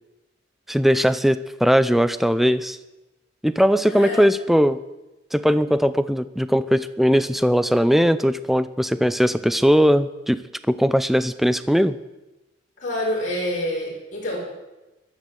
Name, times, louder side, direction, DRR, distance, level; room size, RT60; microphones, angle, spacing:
voice 1, 0.7-2.8 3.4-4.8 5.3-10.4 10.7-12.0, equal, ahead, 13 dB, 0.5 m, -19 dB
voice 2, 3.9-4.3 12.8-14.4, left 1 dB, 45° left, -4 dB, 6.3 m, -27 dB
14.0 x 12.0 x 7.9 m, 1.0 s
head